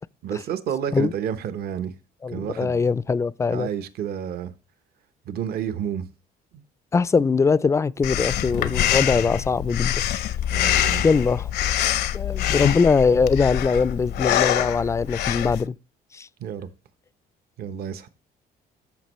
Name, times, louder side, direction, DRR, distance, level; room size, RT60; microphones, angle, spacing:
voice 1, 0.2-1.9 2.3-2.8 3.5-4.5 5.3-6.1 6.5-6.6 10.5-11.0 16.4-16.7 17.6-18.1, right 9 dB, 65° right, 0.9 m, -30 dB
voice 2, 2.2-3.7 6.9-10.0 11.0-11.5 12.1-15.8 16.1-16.3, left 5 dB, 15° left, 0.3 m, -21 dB
Breathing, 8.0-15.6, left 11 dB, 75° left, 0.7 m, -25 dB
14.0 x 5.3 x 3.1 m
cardioid pair, 110°, 17 cm